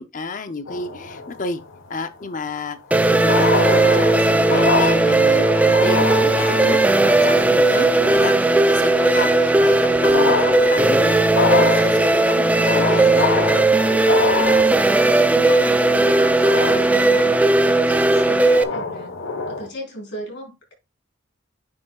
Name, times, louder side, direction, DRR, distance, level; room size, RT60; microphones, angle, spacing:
voice 1, 0.0-1.6 1.9-2.8 3.1-8.3 8.7-12.4 12.7-13.3, left 3 dB, 40° left, 0.7 m, -31 dB
sound 1, 0.7-1.7 2.9-3.0 3.2-19.7, left 4 dB, 85° left, 1.0 m, -26 dB
sound 2, 2.9-18.6, right 2 dB, 10° right, 0.3 m, -17 dB
voice 2, 8.0-8.5 15.2-19.2 19.5-20.7, equal, 60° left, 3.9 m, -36 dB
9.3 x 5.3 x 2.3 m
head